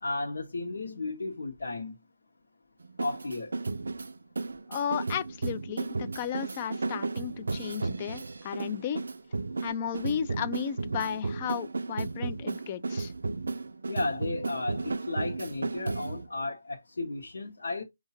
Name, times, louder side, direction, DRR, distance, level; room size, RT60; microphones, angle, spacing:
voice 1, 0.0-1.9 3.0-3.5 13.9-17.8, left 2 dB, 75° left, 1.3 m, -34 dB
sound 1, 2.8-16.3, right 3 dB, 75° right, 0.4 m, -34 dB
voice 2, 4.7-9.0 9.6-13.1, left 9 dB, 25° left, 0.4 m, -34 dB
4.6 x 2.8 x 2.9 m
hypercardioid pair, 170°, 0 cm